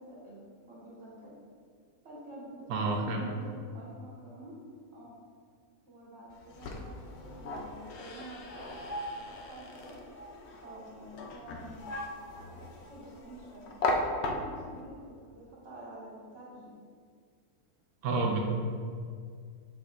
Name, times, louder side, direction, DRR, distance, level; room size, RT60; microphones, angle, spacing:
voice 1, 0.0-1.4 2.0-4.5 4.9-5.1 5.9-8.8 9.1-10.0 10.5-11.9 12.4-13.7 14.2-16.7, right 1 dB, 45° right, -7 dB, 2.0 m, -48 dB
voice 2, 2.7-3.2 18.0-18.4, right 3 dB, 70° right, 1 dB, 1.3 m, -29 dB
sound 1, 6.3-14.8, left 2 dB, 60° left, 0.8 m, -37 dB
6.6 x 6.1 x 2.6 m, 2.1 s
omnidirectional pair, 1.6 m